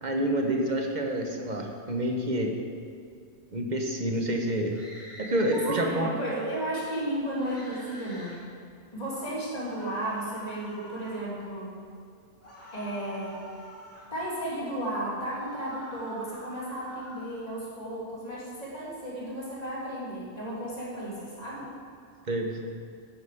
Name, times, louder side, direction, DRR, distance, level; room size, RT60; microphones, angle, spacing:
voice 1, 0.0-2.5 3.5-4.8 5.2-6.1 22.3-22.6, right 1 dB, 40° right, 2 dB, 1.0 m, -28 dB
sound 1, 4.7-5.7 7.4-8.4 9.6-11.2 12.4-14.1 15.2-17.4, equal, 10° left, 2.2 m, -47 dB
voice 2, 5.5-8.4 8.9-11.8 12.7-13.4 14.1-21.7, right 1 dB, 30° left, -7 dB, 2.9 m, -34 dB
10.5 x 8.6 x 5.0 m, 2.3 s
omnidirectional pair, 1.3 m